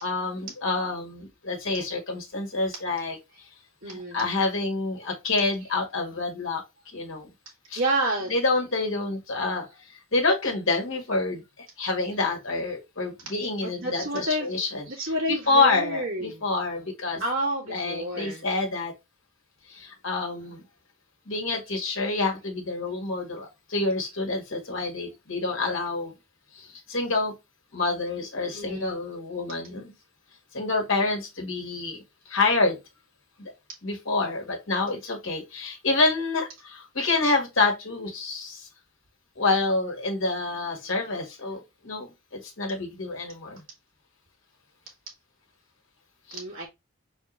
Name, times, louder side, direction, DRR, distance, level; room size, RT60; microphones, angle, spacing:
voice 1, 0.0-3.2 3.9-6.6 6.9-7.3 7.7-7.8 8.3-9.6 10.1-14.9 15.3-17.2 17.7-18.9 19.7-20.6 21.3-26.1 26.5-27.3 27.7-29.9 30.5-32.0 32.2-32.8 33.4-33.5 33.8-38.7 39.4-42.1 42.4-43.6 46.3-46.4, left 3 dB, 70° left, 1.6 m, -27 dB
voice 2, 3.8-4.2 7.8-8.3 13.6-14.5 14.9-16.4 17.2-18.4 28.5-29.0 46.3-46.7, right 1 dB, 75° right, 1.8 m, -29 dB
4.6 x 4.2 x 2.4 m
head